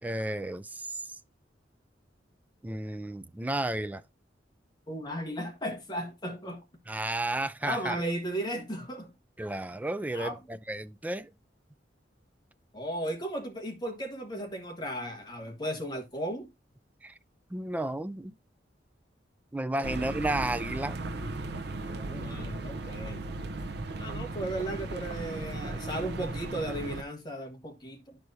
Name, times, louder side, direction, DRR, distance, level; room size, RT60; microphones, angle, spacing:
voice 1, 0.0-1.2 2.6-4.0 6.9-8.0 9.4-11.3 17.0-17.2 17.5-18.4 19.5-21.0, right 1 dB, 10° right, 0.3 m, -32 dB
voice 2, 4.9-6.6 7.6-9.1 10.1-10.4 12.7-16.5 19.8-19.9 22.1-23.2 24.0-28.2, right 1 dB, 25° left, 1.4 m, -35 dB
sound 1, 19.8-27.0, right 2 dB, 65° right, 0.7 m, -36 dB
12.0 x 4.7 x 2.6 m
head